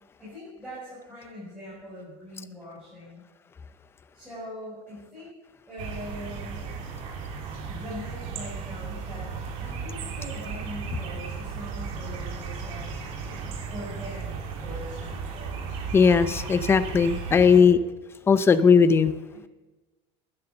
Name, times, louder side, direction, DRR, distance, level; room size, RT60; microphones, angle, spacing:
voice 1, 0.2-3.3 4.1-5.3 5.7-6.7 7.7-9.3 9.6-13.0 13.7-15.6 17.5-17.8 19.3-19.5, left 1 dB, 5° right, -10 dB, 6.2 m, -41 dB
sound 1, 5.8-17.6, right 5 dB, 85° right, 3.4 m, -35 dB
voice 2, 15.9-17.8 18.3-19.1, left 6 dB, 15° left, 12 dB, 0.6 m, -18 dB
17.5 x 10.5 x 7.0 m, 1.1 s
cardioid pair, 165°, 17 cm